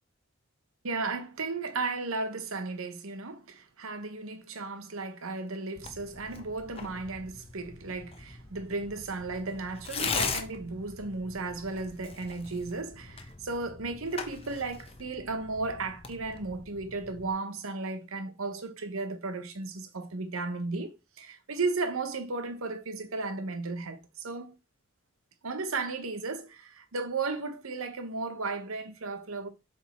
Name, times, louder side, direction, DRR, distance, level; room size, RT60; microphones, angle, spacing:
voice 1, 0.8-24.6 25.4-29.5, right 3 dB, 80° right, 1.0 m, -35 dB
Tearing, 5.8-17.3, left 5 dB, 25° left, 0.7 m, -40 dB
7.5 x 3.4 x 4.2 m
head